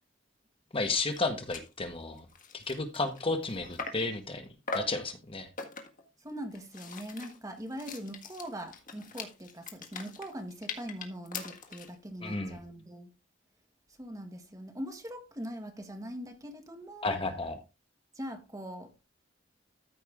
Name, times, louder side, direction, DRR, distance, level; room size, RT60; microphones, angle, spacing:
voice 1, 0.7-2.2 2.5-4.5 4.7-5.5 12.2-12.6 17.0-17.6, left 3 dB, 30° left, 1.2 m, -32 dB
sound 1, 0.8-0.9 1.1-1.3 1.5-1.7 2.2-4.1 4.7-5.0 5.6-6.1 6.5-12.0, left 4 dB, 45° left, 1.8 m, -41 dB
voice 2, 6.2-13.1 14.0-17.2 18.1-18.9, equal, 20° right, 1.6 m, -42 dB
13.5 x 5.3 x 3.6 m
head